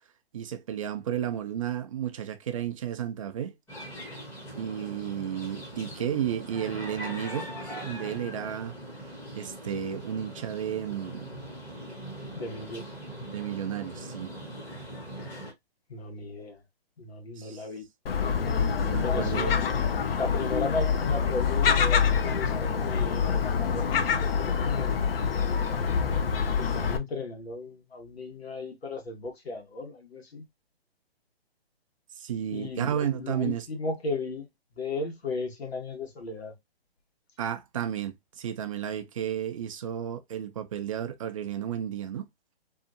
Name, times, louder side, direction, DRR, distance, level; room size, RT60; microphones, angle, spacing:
voice 1, 0.3-3.5 4.6-8.7 9.4-11.3 13.3-14.3 17.4-17.6 18.8-19.5 32.2-33.7 37.4-42.3, right 9 dB, 35° right, 0.4 m, -32 dB
sound 1, 3.7-15.5, equal, 5° left, 0.7 m, -41 dB
voice 2, 12.3-12.8 15.9-16.6 17.0-17.9 19.0-19.6 20.1-25.0 26.5-30.4 32.5-34.5 34.7-36.5, left 3 dB, 80° left, 1.3 m, -35 dB
Gull seagull, 18.1-27.0, left 6 dB, 65° left, 0.6 m, -26 dB
2.7 x 2.4 x 2.5 m
hypercardioid pair, 140°, 31 cm